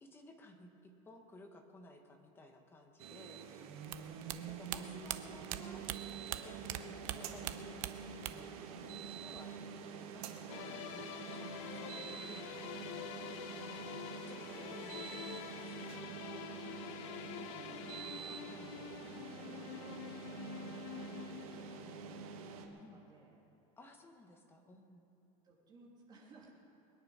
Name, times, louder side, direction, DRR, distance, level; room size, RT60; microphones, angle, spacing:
voice 1, 0.0-3.4 4.4-5.9 6.4-8.7 9.0-9.6 9.9-12.9 14.3-16.0 18.5-18.8 22.8-23.0 23.8-25.1, left 2 dB, 10° left, 4 dB, 1.2 m, -57 dB
sound 1, 3.0-22.7, right 6 dB, 85° right, 1.7 m, -47 dB
voice 2, 3.8-4.2 13.6-14.0 16.8-22.2 22.5-23.4 25.4-26.5, right 3 dB, 25° right, -3 dB, 3.0 m, -61 dB
sound 2, 3.8-6.8 7.0-8.6 8.8-9.6, right 15 dB, 60° right, 0.8 m, -41 dB
sound 3, 10.5-22.3, left 15 dB, 60° left, 0.4 m, -48 dB
22.0 x 10.0 x 5.6 m, 2.9 s
supercardioid pair, 170°, 18 cm